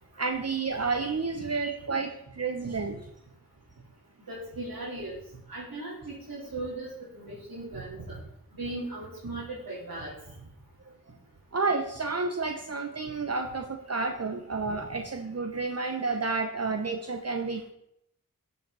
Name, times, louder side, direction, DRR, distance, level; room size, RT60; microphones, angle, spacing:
voice 1, 0.2-3.0 11.5-17.7, right 4 dB, 45° right, 4 dB, 0.9 m, -30 dB
voice 2, 4.3-5.1 5.5-8.1 8.6-10.1 14.6-14.7, right 2 dB, 75° right, -8 dB, 3.9 m, -38 dB
14.0 x 7.0 x 4.1 m, 0.77 s
wide cardioid pair, 65°, 35 cm